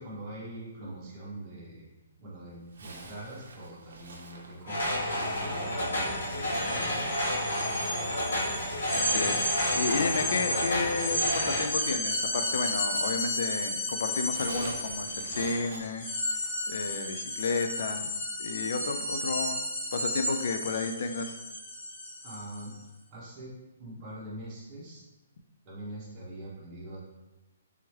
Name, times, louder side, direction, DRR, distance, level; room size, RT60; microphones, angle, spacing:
voice 1, 0.0-1.9 2.2-7.0 22.2-22.8 23.1-23.5 23.8-25.0 25.6-27.0, right 1 dB, 15° right, -9 dB, 0.9 m, -43 dB
Zipper (clothing), 2.7-13.6 13.9-16.9, right 2 dB, 60° right, 0.6 m, -48 dB
sound 1, 4.7-11.7, left 1 dB, 70° left, 1.0 m, -31 dB
sound 2, 5.1-5.2 5.5-22.7, left 1 dB, 20° left, 0.8 m, -33 dB
voice 2, 8.9-9.4 9.7-16.1 16.7-18.1 18.4-19.6 19.9-21.4, left 4 dB, 50° left, 8 dB, 0.3 m, -32 dB
3.4 x 2.9 x 3.0 m, 1.0 s
hypercardioid pair, 175°, 0 cm